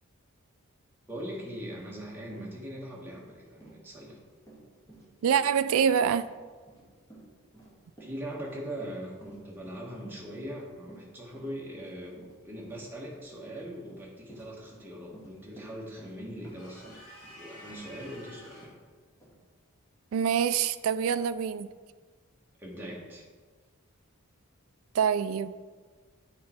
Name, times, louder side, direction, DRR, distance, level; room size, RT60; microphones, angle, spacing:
voice 1, 1.1-4.2 8.0-12.2 12.4-17.1 17.4-18.7 22.6-23.3, equal, 10° right, -4 dB, 1.2 m, -41 dB
Run, 1.9-2.0 2.3-18.2 18.6-18.8 19.2-19.3, right 2 dB, 15° left, 1.7 m, -53 dB
voice 2, 5.2-6.3 20.1-21.7 24.9-25.7, right 7 dB, 70° right, 14 dB, 0.3 m, -26 dB
sound 1, 16.6-18.8, equal, 70° left, 1.7 m, -50 dB
7.7 x 4.2 x 4.3 m, 1.5 s
head